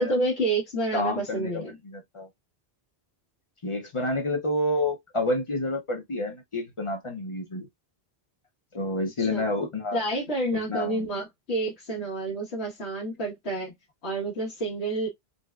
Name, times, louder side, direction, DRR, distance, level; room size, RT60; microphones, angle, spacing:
voice 1, 0.0-1.8 9.2-9.4 9.9-13.7 14.0-15.1, right 2 dB, 85° left, 1.4 m, -29 dB
voice 2, 0.9-2.3 3.6-7.7 8.7-10.0 10.7-11.0, left 1 dB, 40° left, 0.5 m, -29 dB
3.9 x 2.1 x 2.3 m
omnidirectional pair, 1.1 m